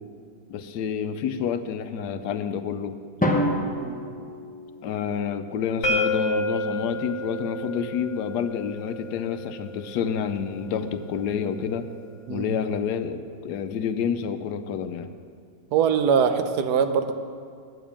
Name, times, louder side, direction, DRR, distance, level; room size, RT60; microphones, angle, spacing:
voice 1, 0.5-2.9 4.8-11.9 12.3-15.1, left 7 dB, 80° left, 10 dB, 1.2 m, -29 dB
Drum, 3.2-5.2, equal, 15° left, 0.3 m, -27 dB
sound 1, 5.8-11.6, left 1 dB, 60° left, 1.6 m, -31 dB
voice 2, 15.7-17.1, right 7 dB, 80° right, 8 dB, 1.3 m, -22 dB
9.2 x 7.2 x 8.5 m, 2.2 s
omnidirectional pair, 1.7 m